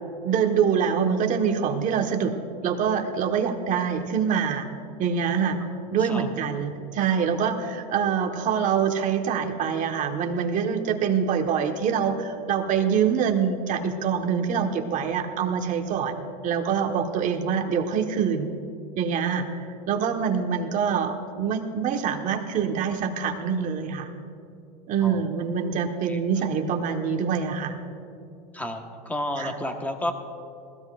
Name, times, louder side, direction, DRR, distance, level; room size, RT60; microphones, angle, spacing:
voice 1, 0.2-2.4 2.6-4.7 5.0-5.6 5.9-18.5 19.0-19.6 19.9-24.1 24.9-27.7 29.4-29.5, right 7 dB, 40° right, 3 dB, 1.4 m, -25 dB
voice 2, 26.1-26.5 28.5-30.1, left 1 dB, 5° left, 4 dB, 1.3 m, -32 dB
20.0 x 15.5 x 2.5 m, 2.7 s
supercardioid pair, 120°, 21 cm